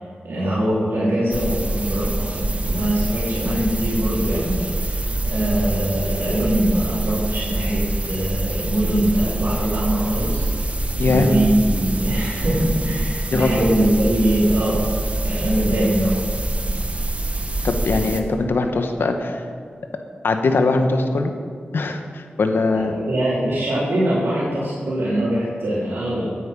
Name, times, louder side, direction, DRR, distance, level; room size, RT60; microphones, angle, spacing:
voice 1, 0.2-10.5 11.1-14.8 15.2-16.2 22.7-26.3, right 1 dB, 80° right, -8 dB, 3.7 m, -22 dB
sound 1, 1.3-18.2, right 2 dB, 35° right, 1.2 m, -25 dB
voice 2, 17.6-19.4 20.2-21.3 21.7-23.0, left 3 dB, 80° left, 6 dB, 1.3 m, -21 dB
15.5 x 9.5 x 5.4 m, 2.1 s
cardioid pair, 60°, 4 cm